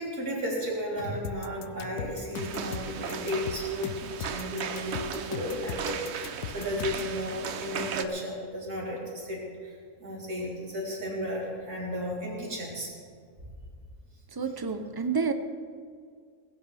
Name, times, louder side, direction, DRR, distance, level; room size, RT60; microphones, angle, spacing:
voice 1, 0.0-12.9, equal, 75° right, -4 dB, 4.1 m, -34 dB
sound 1, 1.2-7.2, left 10 dB, 90° left, 1.1 m, -39 dB
sound 2, 2.3-8.0, right 7 dB, 55° right, 0.9 m, -37 dB
voice 2, 14.3-15.3, right 5 dB, 25° right, 8 dB, 0.5 m, -29 dB
19.5 x 16.0 x 3.5 m, 2.2 s
omnidirectional pair, 1.6 m